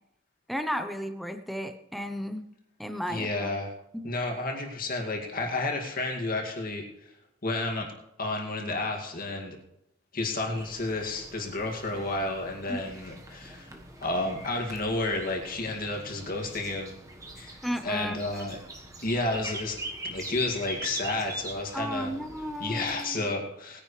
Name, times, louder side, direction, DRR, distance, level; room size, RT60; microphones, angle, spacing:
voice 1, 0.5-2.5 2.8-3.5 3.9-4.1 12.7-12.8 17.6-18.4 21.7-23.3, equal, ahead, 7 dB, 0.8 m, -34 dB
voice 2, 3.1-3.7 4.0-6.8 7.4-7.9 8.2-9.6 10.1-13.7 14.0-16.9 17.4-17.6 17.8-18.6 19.0-19.8 20.0-22.1 22.6-23.8, left 2 dB, 50° left, 1 dB, 2.3 m, -31 dB
sound 1, 10.5-23.1, right 1 dB, 15° right, 1.3 m, -43 dB
20.0 x 10.0 x 3.3 m, 0.82 s
head